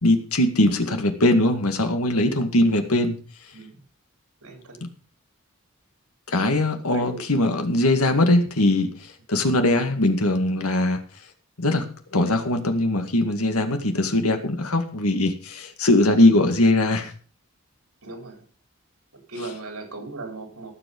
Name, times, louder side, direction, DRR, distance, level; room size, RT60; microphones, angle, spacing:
voice 1, 0.0-3.2 4.8-4.9 6.3-11.0 11.6-17.1 19.4-19.5, left 1 dB, 90° left, 6 dB, 2.1 m, -21 dB
voice 2, 4.4-4.8 6.9-7.2 18.0-18.4 19.3-20.7, right 2 dB, 85° right, 3 dB, 4.3 m, -37 dB
18.0 x 7.3 x 5.4 m, 0.41 s
head